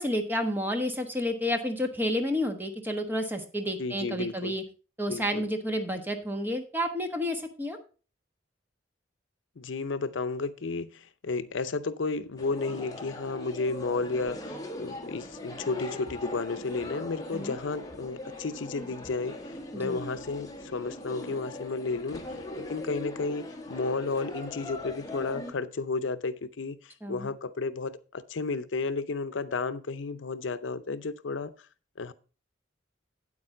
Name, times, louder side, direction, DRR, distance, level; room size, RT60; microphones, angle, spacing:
voice 1, 0.0-4.6 5.0-7.8 17.3-17.6 19.7-20.0 27.0-27.3, equal, 10° right, 5 dB, 1.2 m, -30 dB
voice 2, 3.8-4.6 5.1-5.5 9.6-19.4 19.7-31.5 32.0-32.1, left 3 dB, 75° left, 13 dB, 0.6 m, -32 dB
sound 1, 12.4-25.5, left 1 dB, 20° left, 1.3 m, -40 dB
8.8 x 8.6 x 3.8 m, 0.35 s
head